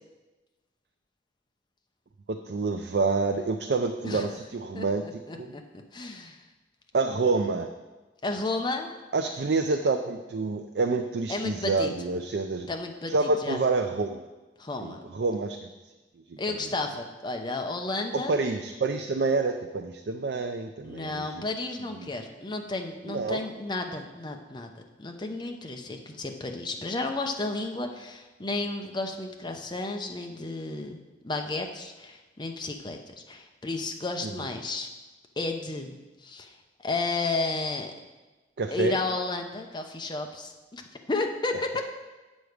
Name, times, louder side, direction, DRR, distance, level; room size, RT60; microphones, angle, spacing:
voice 1, 2.3-5.5 6.9-7.7 9.1-12.7 13.1-14.3 14.8-15.7 16.3-16.6 18.1-21.4 22.0-22.1 23.1-23.4 34.2-34.3 38.6-39.0, right 3 dB, 65° right, 5 dB, 0.5 m, -28 dB
voice 2, 4.7-5.6 5.9-6.4 8.2-8.9 11.3-11.9 12.7-13.6 14.6-15.0 16.4-18.4 20.8-31.0 31.2-33.0 33.3-34.9 35.4-36.0 36.2-36.5 36.8-37.9 38.7-40.8 41.1-41.8, left 2 dB, 25° left, 3 dB, 0.7 m, -32 dB
8.2 x 6.3 x 5.0 m, 1.2 s
head